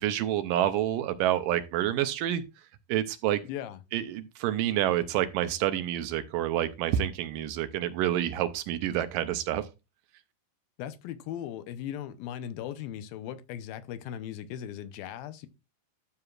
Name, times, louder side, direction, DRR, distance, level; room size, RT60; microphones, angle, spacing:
voice 1, 0.0-2.4 2.9-3.4 3.9-9.7, right 12 dB, 80° right, 2.1 m, -28 dB
voice 2, 3.4-3.8 10.8-15.5, left 10 dB, 80° left, 2.6 m, -38 dB
12.5 x 6.9 x 2.4 m
omnidirectional pair, 4.2 m